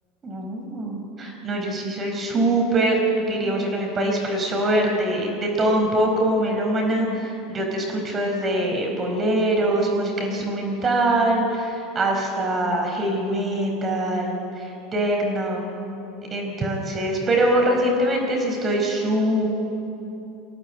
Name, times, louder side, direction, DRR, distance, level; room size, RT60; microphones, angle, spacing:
voice 1, 0.2-15.7 16.3-19.5, right 1 dB, 30° right, 1 dB, 4.6 m, -23 dB
23.5 x 16.5 x 8.5 m, 2.8 s
hypercardioid pair, 85°, 0 cm